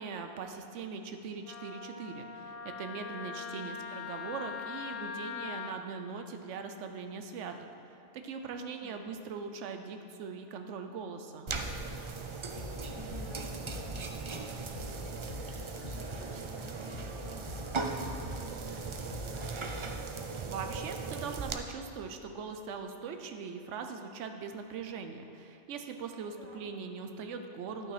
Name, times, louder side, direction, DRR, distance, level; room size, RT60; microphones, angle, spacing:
voice 1, 0.0-7.7 8.1-11.5 20.4-27.9, right 5 dB, 90° right, 6 dB, 1.0 m, -41 dB
Wind instrument woodwind instrument, 1.5-5.8, left 7 dB, 65° left, 0.3 m, -41 dB
sound 1, 11.5-20.5, left 3 dB, 40° left, 0.9 m, -46 dB
sound 2, 11.5-21.5, right 4 dB, 50° right, 0.3 m, -38 dB
voice 2, 12.7-19.8 26.4-26.6, equal, 10° right, -6 dB, 1.8 m, -52 dB
11.5 x 6.1 x 4.9 m, 2.9 s
omnidirectional pair, 1.2 m